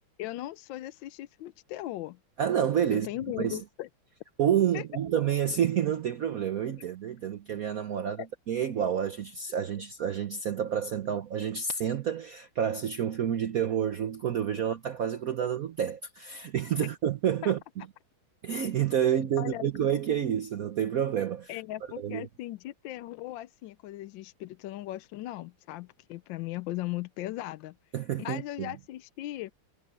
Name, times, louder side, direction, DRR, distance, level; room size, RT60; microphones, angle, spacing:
voice 1, 0.2-2.2 2.9-3.9 4.7-4.8 8.2-8.3 16.8-16.9 17.4-17.5 19.4-19.7 21.5-27.8 28.2-29.5, left 15 dB, 80° left, 1.3 m, -38 dB
voice 2, 2.4-3.1 3.4-3.6 4.4-17.6 18.4-21.5 22.0-22.3 27.9-28.7, right 9 dB, 55° right, 1.1 m, -29 dB
omnidirectional pair, 2.2 m